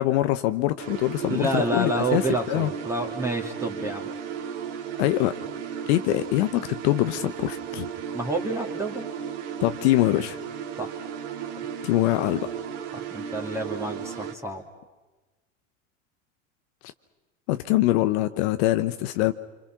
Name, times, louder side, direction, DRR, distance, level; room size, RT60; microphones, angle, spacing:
voice 1, 0.0-2.7 5.0-5.4 5.9-7.9 9.6-10.4 11.8-12.5 17.5-19.3, left 16 dB, 60° left, 10 dB, 1.0 m, -23 dB
sound 1, 0.8-14.3, right 8 dB, 70° right, 2.4 m, -35 dB
voice 2, 1.3-4.1 8.1-9.1 10.8-10.9 12.9-14.6, right 2 dB, 5° right, 2 dB, 2.7 m, -28 dB
27.0 x 25.5 x 6.0 m, 1.2 s
hypercardioid pair, 95°, 38 cm